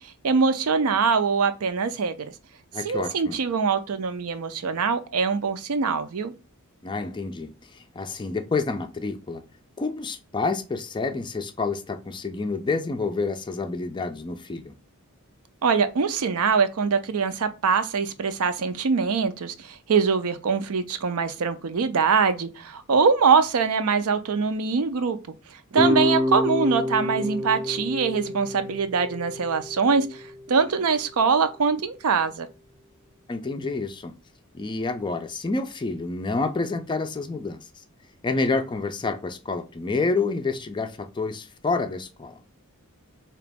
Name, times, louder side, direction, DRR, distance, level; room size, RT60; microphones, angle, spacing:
voice 1, 0.2-2.2 2.8-6.3 15.6-25.2 25.7-30.2 30.5-32.5, right 5 dB, 70° right, 0.5 m, -23 dB
voice 2, 2.7-3.4 6.8-9.4 9.8-14.7 33.3-34.1 34.5-37.8 38.2-42.4, left 3 dB, 20° left, 0.4 m, -28 dB
sound 1, 25.7-30.9, left 1 dB, 20° right, 0.6 m, -28 dB
4.0 x 2.9 x 3.4 m
head